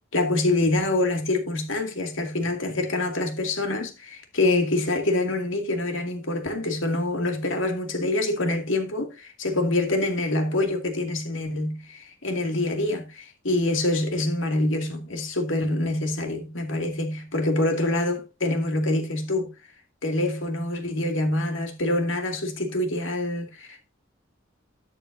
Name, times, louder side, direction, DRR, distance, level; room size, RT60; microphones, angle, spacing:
voice 1, 0.1-19.5 20.0-23.9, left 2 dB, 75° left, 2.5 m, -26 dB
13.0 x 9.2 x 2.7 m
head